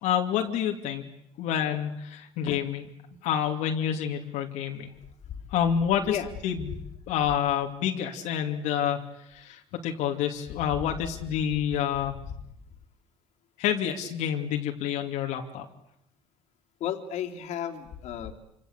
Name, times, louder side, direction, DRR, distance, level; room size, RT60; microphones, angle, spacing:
voice 1, 0.0-1.1 1.4-2.8 3.2-4.9 5.5-6.1 6.4-6.7 7.1-12.2 13.6-15.6, left 9 dB, 90° left, 2 dB, 2.7 m, -28 dB
voice 2, 16.8-18.3, left 9 dB, 70° left, 3 dB, 3.1 m, -33 dB
27.5 x 26.5 x 8.2 m, 0.79 s
cardioid pair, 130°, 12 cm